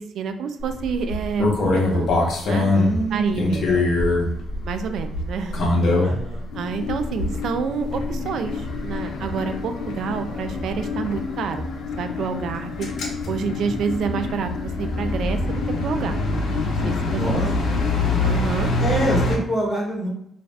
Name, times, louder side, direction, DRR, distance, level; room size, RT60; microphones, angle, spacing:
voice 1, 0.0-2.7 3.1-3.7 4.6-5.8 6.0-6.1 6.5-11.7 12.0-12.9 13.3-16.5 16.8-17.2 18.2-18.7, right 6 dB, 70° right, 9 dB, 0.3 m, -28 dB
sound 1, 0.6-6.4 6.9-7.4 7.8-19.4, left 2 dB, 65° left, 0.7 m, -24 dB
voice 2, 2.7-3.9 6.0-6.5 17.0-17.5 18.8-20.1, right 1 dB, ahead, -4 dB, 1.2 m, -26 dB
sound 2, 6.5-18.2, left 6 dB, 80° left, 0.3 m, -32 dB
2.5 x 2.4 x 3.2 m, 0.73 s
cardioid pair, 90°, 0 cm